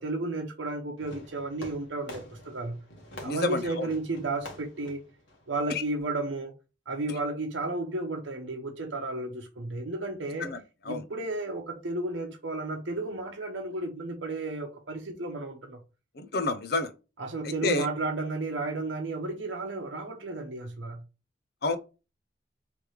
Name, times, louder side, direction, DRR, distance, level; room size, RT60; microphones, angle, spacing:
voice 1, 0.0-2.8 3.2-5.0 5.5-6.5 6.9-10.5 10.9-15.8 17.2-21.0, right 2 dB, 80° right, 0.8 m, -33 dB
Fireworks, 1.0-6.0, left 1 dB, 85° left, 1.5 m, -47 dB
voice 2, 3.2-3.9 5.7-5.8 10.4-10.6 10.9-11.0 16.2-16.9 17.4-17.9 21.6-21.8, left 2 dB, 55° left, 0.6 m, -29 dB
3.4 x 3.1 x 4.8 m
head